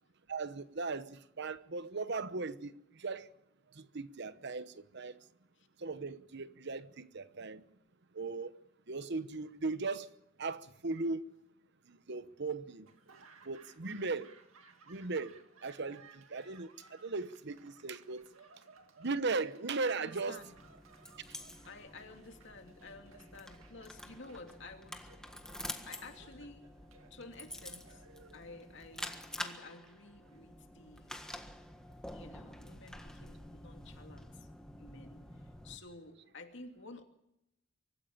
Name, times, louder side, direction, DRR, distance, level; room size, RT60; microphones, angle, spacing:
voice 1, 0.3-3.3 3.7-5.2 5.8-7.6 8.1-8.5 8.9-10.1 10.4-11.2 11.9-12.9 13.4-14.3 14.9-18.3 19.0-20.4, right 3 dB, 55° right, 1.0 m, -38 dB
Laughter / Applause, 12.8-30.9, right 4 dB, 85° right, 2.2 m, -62 dB
voice 2, 19.8-20.5 21.6-25.1 25.8-26.7 27.1-28.0 28.3-31.2 32.1-34.5 34.8-37.0, left 3 dB, 60° left, 2.6 m, -52 dB
sound 1, 20.4-35.8, left 1 dB, 5° left, 1.6 m, -48 dB
24.5 x 14.5 x 8.7 m
head